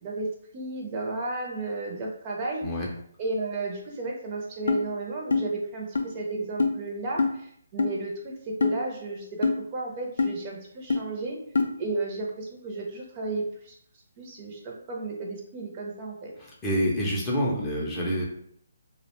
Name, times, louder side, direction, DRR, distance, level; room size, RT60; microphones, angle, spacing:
voice 1, 0.0-2.6 3.2-11.4 11.8-13.7 14.2-16.3, right 2 dB, 30° right, -1 dB, 0.5 m, -33 dB
sound 1, 4.7-4.8 5.3-5.5 5.9-6.0 6.6-6.7 7.2-7.3 7.8-7.9 8.6-8.8 9.4-9.6 10.2-10.3 10.9-11.0 11.5-11.7, left 4 dB, 75° left, 0.3 m, -23 dB
voice 2, 16.4-18.2, equal, 15° left, -4 dB, 0.5 m, -27 dB
2.4 x 2.1 x 2.9 m, 0.67 s
hypercardioid pair, 155°, 0 cm